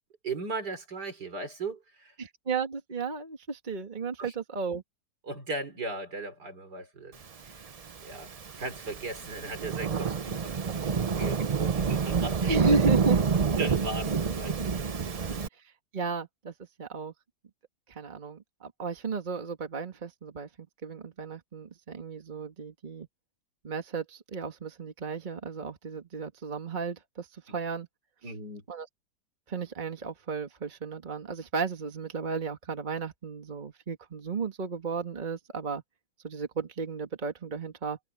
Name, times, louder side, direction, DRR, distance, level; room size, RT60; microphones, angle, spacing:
voice 1, 0.2-2.1 4.2-4.3 5.2-7.7 8.0-12.8 13.6-14.8 28.2-28.6, right 3 dB, 80° right, 4.4 m, -38 dB
voice 2, 2.2-4.8 12.5-13.2 15.9-16.5 16.8-17.1 17.9-20.5 20.8-23.1 23.6-27.9 28.7-28.9 29.5-35.8 36.2-38.0, right 4 dB, 30° right, 1.8 m, -34 dB
Thunderstorm / Rain, 7.8-15.5, right 5 dB, 55° right, 0.4 m, -28 dB
omnidirectional pair, 1.7 m